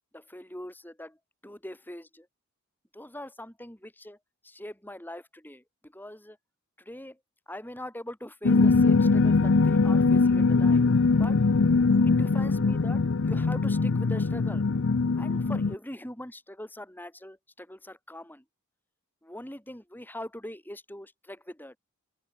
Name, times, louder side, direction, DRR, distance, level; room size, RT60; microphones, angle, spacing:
voice 1, 0.1-1.2 1.4-2.3 2.9-4.2 4.4-6.4 6.8-7.2 7.5-10.8 11.2-11.4 12.0-14.6 15.2-18.4 19.2-21.8, left 1 dB, 10° left, 6.6 m, -42 dB
sound 1, 8.4-15.7, left 4 dB, 60° left, 0.6 m, -22 dB
open air
head